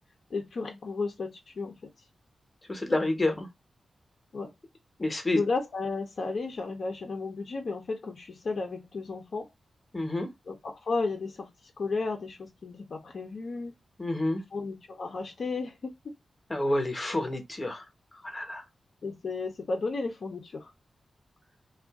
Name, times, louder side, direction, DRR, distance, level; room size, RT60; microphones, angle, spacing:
voice 1, 0.3-1.9 4.3-4.5 5.3-9.5 10.5-13.7 14.5-16.1 19.0-20.7, left 3 dB, 65° left, 0.8 m, -33 dB
voice 2, 2.7-3.5 5.0-5.4 9.9-10.3 14.0-14.4 16.5-17.8 18.2-18.6, left 1 dB, 25° left, 1.0 m, -28 dB
2.6 x 2.5 x 3.6 m
cardioid pair, 70°, 0 cm